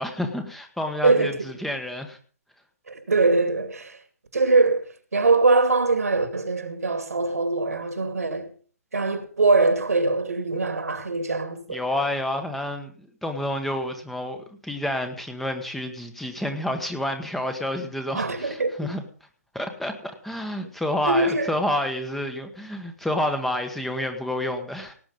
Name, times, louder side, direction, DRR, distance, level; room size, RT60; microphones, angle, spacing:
voice 1, 0.0-2.2 11.7-14.4 14.6-19.0 19.5-24.9, left 1 dB, 5° left, 1.3 m, -29 dB
voice 2, 1.0-1.5 2.9-4.0 4.3-8.5 8.9-11.8 18.1-18.9 20.6-20.7 21.1-21.5, right 3 dB, 70° right, 2.4 m, -22 dB
18.0 x 8.8 x 5.3 m
figure-of-eight pair, 130°, 8 cm